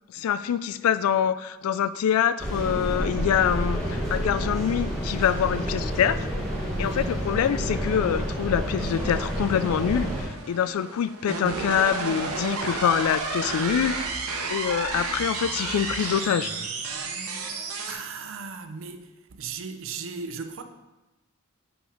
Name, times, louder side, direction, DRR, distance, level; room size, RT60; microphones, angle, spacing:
voice 1, 0.1-6.3 6.8-14.1 14.5-16.5, left 8 dB, 80° left, 0.3 m, -25 dB
sound 1, 2.4-10.2, equal, 5° left, 1.2 m, -29 dB
voice 2, 6.8-7.1 17.3-20.6, right 5 dB, 65° right, 0.5 m, -37 dB
sound 2, 8.8-17.9, right 4 dB, 85° right, 0.9 m, -32 dB
5.7 x 4.4 x 4.8 m
head